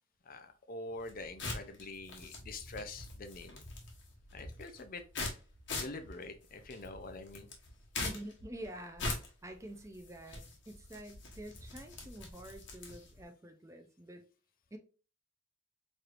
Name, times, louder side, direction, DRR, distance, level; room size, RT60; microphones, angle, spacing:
voice 1, 0.3-3.6 4.3-5.0 5.8-7.5, left 2 dB, 40° left, 0.5 m, -45 dB
sound 1, 1.0-13.2, left 2 dB, 55° left, 1.2 m, -43 dB
voice 2, 8.0-14.2 14.7-14.8, right 1 dB, 15° right, 0.4 m, -48 dB
4.4 x 3.2 x 2.4 m
head